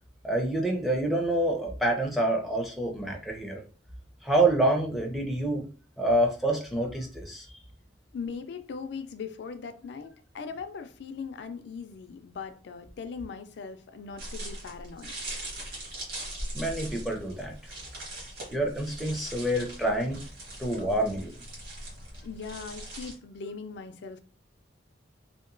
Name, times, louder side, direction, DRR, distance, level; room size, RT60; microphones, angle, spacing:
voice 1, 0.2-3.6 4.2-5.7 6.0-7.5 16.5-17.5 18.5-20.2 20.6-21.3, right 1 dB, ahead, 0.4 m, -27 dB
voice 2, 8.1-15.1 22.2-24.2, left 5 dB, 65° left, 0.4 m, -39 dB
sound 1, 14.2-23.1, right 1 dB, 60° right, 1.3 m, -40 dB
2.8 x 2.1 x 2.5 m
head